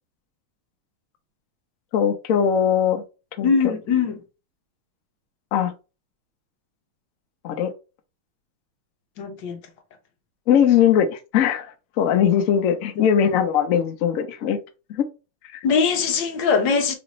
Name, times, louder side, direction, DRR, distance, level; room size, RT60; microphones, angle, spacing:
voice 1, 1.9-3.0 3.4-3.5 5.5-5.7 7.4-7.7 10.5-14.6 14.9-15.0 15.5-15.6, left 8 dB, 85° left, 0.7 m, -20 dB
voice 2, 3.4-4.2 9.2-9.6 13.0-13.1 15.6-17.0, left 5 dB, 65° left, 1.4 m, -21 dB
4.9 x 2.5 x 3.0 m
omnidirectional pair, 2.3 m